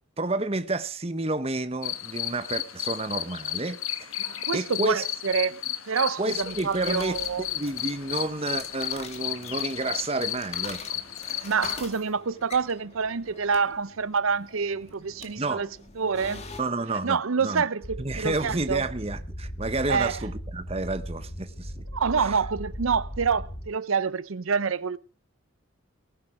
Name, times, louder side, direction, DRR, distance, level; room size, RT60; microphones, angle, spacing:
voice 1, 0.2-5.0 6.2-11.4 15.4-15.7 16.6-17.6 18.0-21.8 22.2-22.4, right 2 dB, 30° right, 1.0 m, -30 dB
sound 1, 1.8-11.8, left 12 dB, 85° left, 1.2 m, -33 dB
voice 2, 4.2-5.6 5.9-7.5 11.4-15.7 16.0-16.4 17.0-18.8 19.9-20.2 21.9-25.0, right 5 dB, 85° right, 0.7 m, -27 dB
sound 2, 6.3-16.6, left 3 dB, 30° left, 2.4 m, -45 dB
sound 3, 17.8-23.7, equal, 50° left, 4.3 m, -38 dB
19.0 x 10.5 x 5.0 m
head